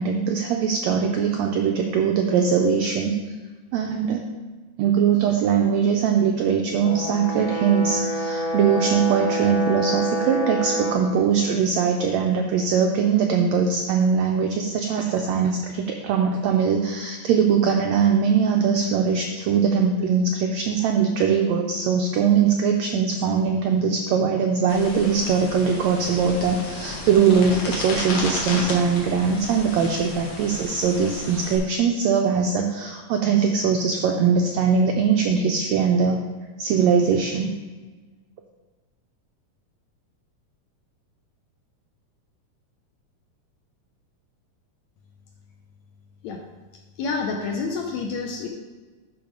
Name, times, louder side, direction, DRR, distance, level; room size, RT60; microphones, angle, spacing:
voice 1, 0.0-3.2 3.7-4.2 4.8-36.2 36.6-37.5, right 6 dB, 85° right, 3 dB, 1.5 m, -21 dB
Brass instrument, 6.8-11.1, right 1 dB, 40° left, 1.5 m, -27 dB
sound 1, 24.7-31.6, left 2 dB, 60° left, 2.6 m, -33 dB
voice 2, 47.0-48.5, left 4 dB, 75° left, 2 dB, 1.7 m, -28 dB
11.5 x 4.0 x 5.2 m, 1.3 s
omnidirectional pair, 3.8 m